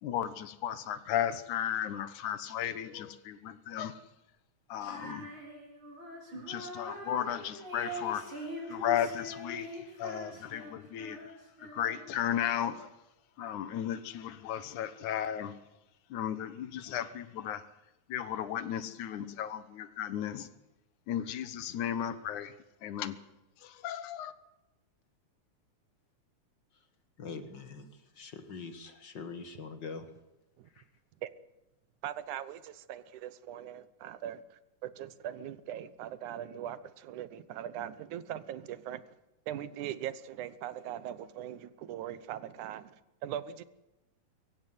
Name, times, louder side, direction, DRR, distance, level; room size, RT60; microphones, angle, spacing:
voice 1, 0.0-4.0 4.7-5.3 6.3-11.2 11.6-12.9 13.4-15.5 16.1-17.6 18.1-20.5 21.1-22.5 22.8-23.2 23.6-24.3, left 10 dB, 80° left, 2.6 m, -35 dB
voice 2, 4.8-5.1 27.2-27.9 28.2-30.0 30.8-30.9, left 4 dB, 45° left, 1.9 m, -43 dB
Female singing, 4.8-12.2, equal, 40° right, 5.7 m, -43 dB
voice 3, 32.0-34.4 34.8-39.0 39.5-43.0 43.2-43.6, right 11 dB, 80° right, 2.4 m, -40 dB
23.5 x 15.5 x 9.3 m
omnidirectional pair, 3.4 m